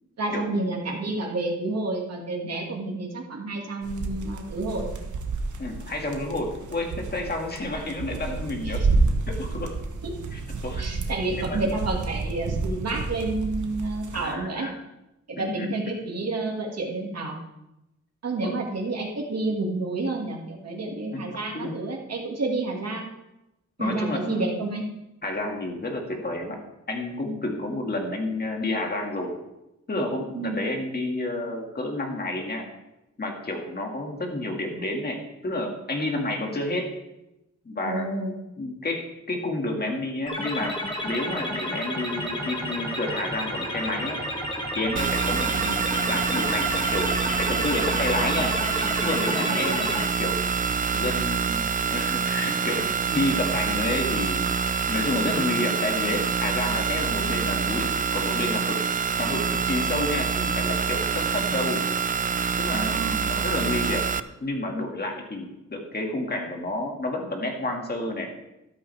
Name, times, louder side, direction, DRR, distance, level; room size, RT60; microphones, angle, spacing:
voice 1, 0.2-4.9 8.6-8.7 10.0-10.1 10.8-14.7 15.3-17.4 18.2-23.1 23.8-24.8 30.3-30.6 37.8-38.3 45.5-45.8 49.5-49.8 62.7-63.2, right 2 dB, 60° right, -1 dB, 2.1 m, -30 dB
sound 1, 3.8-14.3, right 3 dB, 80° right, 1.2 m, -30 dB
voice 2, 5.6-8.8 9.3-9.8 10.3-10.9 11.3-11.6 14.1-14.8 15.3-15.7 18.4-18.6 21.1-21.7 23.8-24.6 25.2-26.6 26.9-29.4 29.9-32.7 33.2-36.9 37.7-38.1 38.6-44.2 44.8-50.5 50.9-54.5 54.9-58.8 59.2-61.8 62.6-68.3, left 2 dB, 35° left, 2 dB, 2.0 m, -30 dB
sound 2, 40.3-50.0, left 1 dB, 15° left, 2.1 m, -31 dB
sound 3, 45.0-64.2, right 6 dB, 30° right, 0.4 m, -26 dB
13.0 x 13.0 x 3.4 m, 0.92 s
wide cardioid pair, 165°, 29 cm